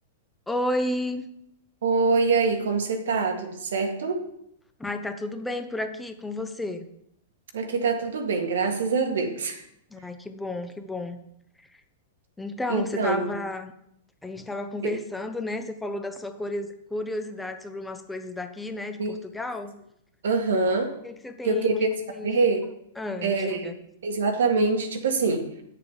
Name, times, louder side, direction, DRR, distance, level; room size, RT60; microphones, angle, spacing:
voice 1, 0.5-1.3 4.8-6.9 9.9-11.2 11.6-11.7 12.4-13.7 14.2-19.7 21.0-22.4 23.0-23.8, left 1 dB, 5° left, 7 dB, 0.9 m, -32 dB
voice 2, 1.8-4.2 7.5-9.6 12.7-13.3 14.8-14.9 19.0-19.2 20.2-20.9 21.4-21.9 22.2-22.6 23.2-23.7 24.0-25.5, right 4 dB, 75° right, 5 dB, 1.6 m, -24 dB
9.6 x 6.8 x 4.9 m, 0.75 s
hypercardioid pair, 115°, 0 cm